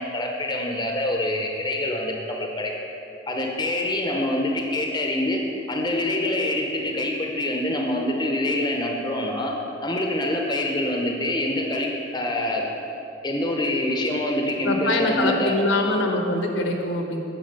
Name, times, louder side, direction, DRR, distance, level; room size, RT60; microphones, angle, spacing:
voice 1, 0.0-2.7 3.3-5.4 5.7-9.5 9.8-12.6 13.2-15.5, left 1 dB, 20° left, 1 dB, 0.7 m, -25 dB
voice 2, 14.6-17.2, left 2 dB, 80° left, 2 dB, 1.1 m, -23 dB
9.3 x 4.8 x 6.6 m, 2.9 s
head